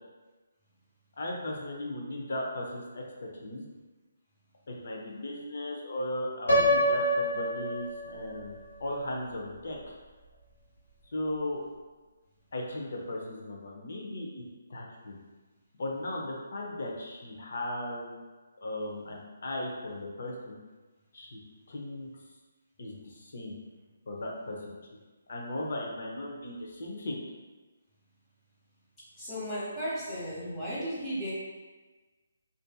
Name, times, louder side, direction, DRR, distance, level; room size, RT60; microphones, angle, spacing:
voice 1, 1.2-3.6 4.7-9.8 11.1-11.6 12.5-14.4 14.7-15.2 15.8-18.1 18.6-20.6 21.1-21.4 21.7-22.1 22.8-23.6 24.1-24.7 25.3-27.2, left 1 dB, 65° left, -1 dB, 0.6 m, -37 dB
Piano, 6.5-8.4, equal, 80° left, 0.9 m, -26 dB
voice 2, 29.2-31.3, equal, 15° left, -10 dB, 1.0 m, -35 dB
2.5 x 2.5 x 2.2 m, 1.3 s
hypercardioid pair, 155°, 0 cm